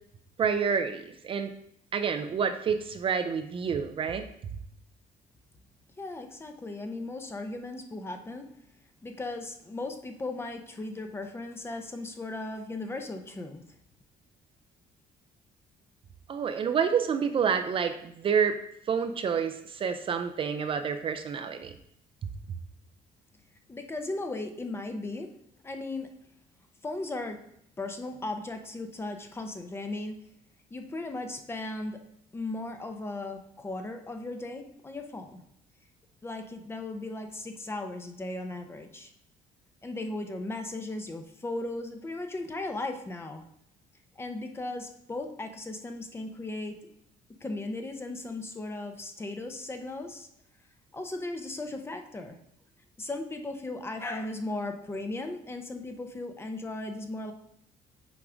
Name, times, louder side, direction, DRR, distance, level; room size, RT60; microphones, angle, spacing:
voice 1, 0.4-1.5 1.9-4.2 16.3-18.6 18.9-21.7, right 6 dB, 35° right, 8 dB, 0.5 m, -28 dB
voice 2, 6.0-8.5 9.0-13.6 23.7-25.3 25.6-26.1 26.8-27.4 27.8-30.2 30.7-32.0 32.3-35.4 36.2-39.1 39.8-43.5 44.2-46.8 47.4-50.3 50.9-52.4 53.0-57.3, left 2 dB, 15° left, 5 dB, 0.7 m, -37 dB
6.0 x 4.7 x 5.0 m, 0.75 s
cardioid pair, 155°, 15 cm